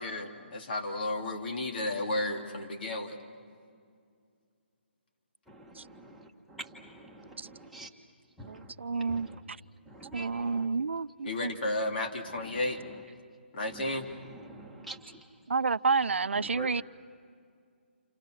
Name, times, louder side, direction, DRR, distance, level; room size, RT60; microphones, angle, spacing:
voice 1, 0.0-3.2 11.2-12.8 13.5-14.1, left 2 dB, 55° left, 3.1 m, -33 dB
voice 2, 5.5-7.9 8.4-8.7 9.0-9.5 9.8-10.7 12.3-13.0 13.7-15.3 16.3-16.8, right 2 dB, ahead, 1.6 m, -47 dB
voice 3, 8.4-9.3 10.1-11.5 15.5-16.8, right 4 dB, 75° right, 0.6 m, -29 dB
29.0 x 29.0 x 6.5 m
figure-of-eight pair, 150°, 6 cm